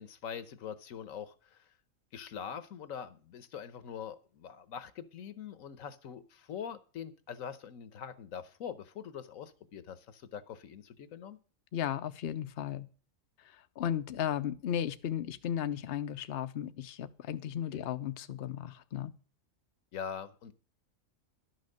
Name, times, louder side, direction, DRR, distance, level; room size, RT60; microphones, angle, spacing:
voice 1, 0.0-1.7 2.1-11.4 17.7-17.9 19.9-20.5, left 8 dB, 80° left, 13 dB, 1.3 m, -43 dB
voice 2, 11.7-12.9 13.4-19.1, left 10 dB, 55° left, 9 dB, 0.8 m, -35 dB
11.5 x 6.3 x 6.5 m, 0.38 s
omnidirectional pair, 1.4 m